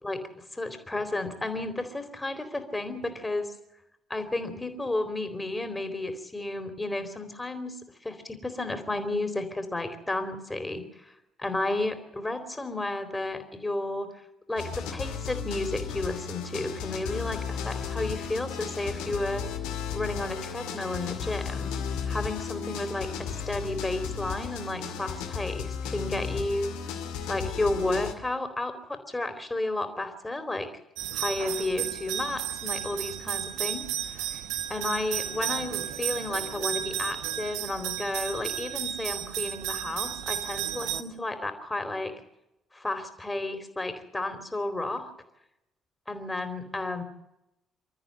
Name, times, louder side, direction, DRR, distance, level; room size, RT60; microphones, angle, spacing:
voice 1, 0.0-3.5 4.1-10.8 11.4-14.1 14.5-19.5 19.9-21.7 22.1-26.8 27.3-30.7 31.1-34.4 34.7-42.1 42.7-45.1 46.1-47.0, left 2 dB, 15° left, 8 dB, 3.9 m, -32 dB
sound 1, 14.6-28.1, left 6 dB, 70° left, 2.4 m, -34 dB
sound 2, 31.0-41.0, right 11 dB, 70° right, 1.1 m, -33 dB
27.0 x 13.5 x 7.8 m, 0.90 s
figure-of-eight pair, 45°, 0 cm